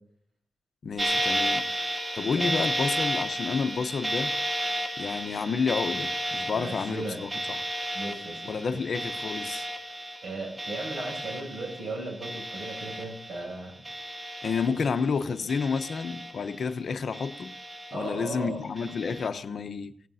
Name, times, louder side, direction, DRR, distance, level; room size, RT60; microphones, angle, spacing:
voice 1, 0.8-1.7 2.2-4.3 5.0-7.7 8.5-9.7 14.4-17.5 17.9-19.9, left 5 dB, 60° left, 0.9 m, -30 dB
sound 1, 1.0-13.6 13.8-15.1 15.5-16.7 17.1-18.2 18.8-19.3, right 1 dB, 20° right, 1.5 m, -33 dB
voice 2, 6.5-7.2 7.9-8.5 10.2-13.7 14.7-14.9 17.9-18.6, right 2 dB, 60° right, 7.4 m, -36 dB
17.5 x 17.0 x 2.8 m
cardioid pair, 105°, 0 cm